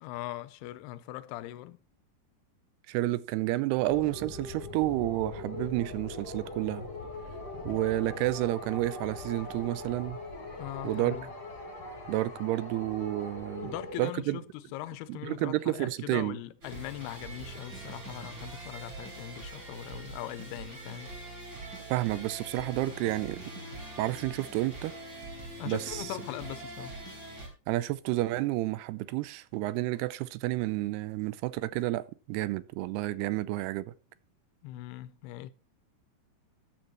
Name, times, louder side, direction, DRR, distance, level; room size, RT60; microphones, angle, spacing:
voice 1, 0.0-1.8 7.7-7.8 10.6-11.3 13.6-21.1 25.6-27.0 34.6-35.5, left 15 dB, 85° left, 2.7 m, -40 dB
voice 2, 2.9-6.9 7.6-10.2 10.8-11.2 12.1-14.4 15.1-16.4 21.9-23.4 24.0-24.9 25.7-26.1 27.7-33.9, right 17 dB, 85° right, 2.7 m, -30 dB
sound 1, 3.9-13.9, left 2 dB, 35° left, 3.8 m, -41 dB
sound 2, 16.6-27.5, right 2 dB, 25° right, 3.4 m, -43 dB
14.0 x 10.0 x 3.0 m
omnidirectional pair, 4.6 m